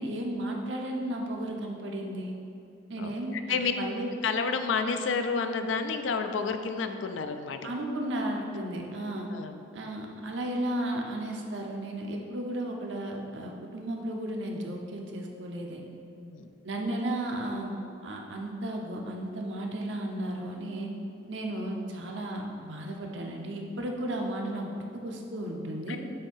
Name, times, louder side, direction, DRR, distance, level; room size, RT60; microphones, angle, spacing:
voice 1, 0.0-2.3 2.9-4.1 7.6-9.3 9.7-15.8 16.6-17.7 18.0-20.9 21.3-26.0, right 1 dB, 75° right, 1 dB, 0.8 m, -34 dB
voice 2, 3.0-3.7 4.2-7.7 9.3-9.6 16.2-16.5 25.9-26.0, left 5 dB, 80° left, 7 dB, 0.4 m, -30 dB
6.8 x 2.7 x 5.4 m, 2.6 s
head